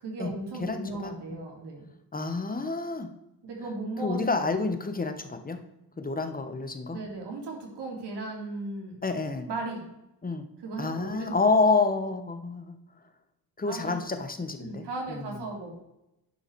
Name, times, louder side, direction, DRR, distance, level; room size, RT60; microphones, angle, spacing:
voice 1, 0.0-1.9 3.4-4.6 6.9-9.0 9.5-9.9 10.6-11.4 13.7-14.1 14.6-15.7, right 2 dB, 85° right, 0 dB, 2.9 m, -36 dB
voice 2, 0.6-1.1 2.1-3.1 4.0-5.6 6.0-7.0 9.0-9.5 10.2-10.5 10.8-12.8 13.6-15.4, left 3 dB, 20° left, 8 dB, 1.1 m, -28 dB
10.0 x 5.6 x 4.6 m, 0.89 s
cardioid pair, 110°, 40 cm